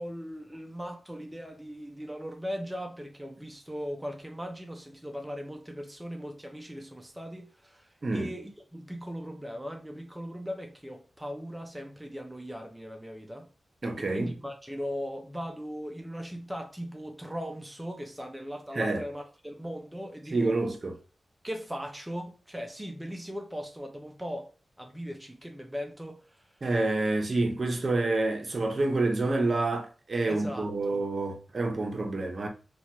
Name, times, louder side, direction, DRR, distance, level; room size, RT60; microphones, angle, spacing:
voice 1, 0.0-13.5 14.0-20.6 21.4-24.5 24.8-26.6 30.3-31.1, equal, 10° right, 0.4 m, -39 dB
voice 2, 13.8-14.3 18.7-19.0 20.3-20.9 26.6-32.5, right 2 dB, 50° right, 0.6 m, -28 dB
2.8 x 2.2 x 2.8 m
wide cardioid pair, 75°, 0 cm